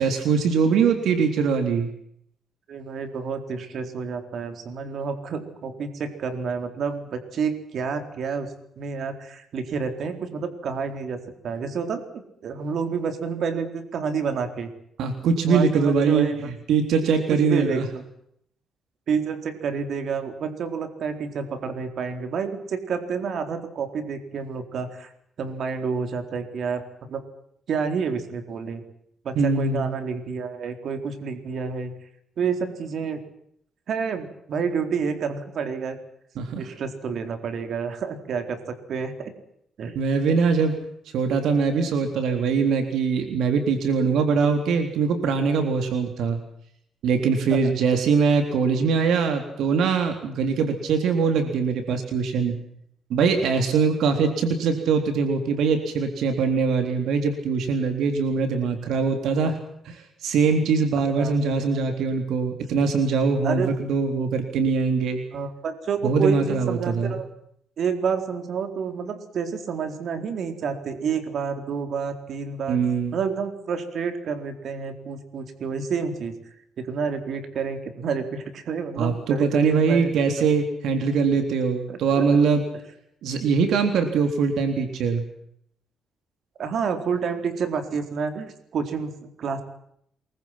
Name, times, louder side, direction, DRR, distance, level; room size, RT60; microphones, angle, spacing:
voice 1, 0.0-1.9 15.0-17.9 29.4-29.9 36.4-36.6 40.0-40.8 41.1-46.4 47.0-52.5 53.1-59.6 59.9-65.2 66.0-67.2 72.7-73.2 79.0-82.6 83.2-85.2, right 5 dB, 80° right, 6 dB, 3.7 m, -22 dB
voice 2, 2.7-14.7 15.5-16.5 17.3-17.8 19.1-25.1 25.4-27.2 27.7-28.8 29.2-31.9 32.4-33.2 33.9-36.0 36.6-39.3 39.8-40.0 47.5-47.6 61.1-61.3 63.4-63.7 65.3-67.3 67.8-72.8 73.1-76.3 76.8-80.1 81.9-82.4 86.6-89.6, right 6 dB, 60° right, 7 dB, 4.1 m, -29 dB
28.0 x 23.0 x 6.0 m, 0.69 s
cardioid pair, 110°, 0 cm